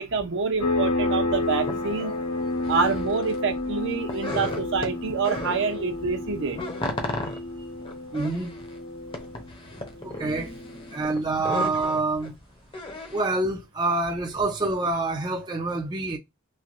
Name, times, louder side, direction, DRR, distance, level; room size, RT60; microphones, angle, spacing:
voice 1, 0.0-2.1 2.6-6.6, right 5 dB, 60° right, 0.7 m, -27 dB
sound 1, 0.6-10.9, left 2 dB, 70° left, 1.1 m, -31 dB
sound 2, 1.6-3.4 3.7-5.8 6.1-13.3, left 2 dB, 25° left, 0.7 m, -35 dB
voice 2, 8.1-8.5 9.8-12.3 13.1-16.2, right 2 dB, 20° right, 0.5 m, -27 dB
3.2 x 2.6 x 2.4 m
head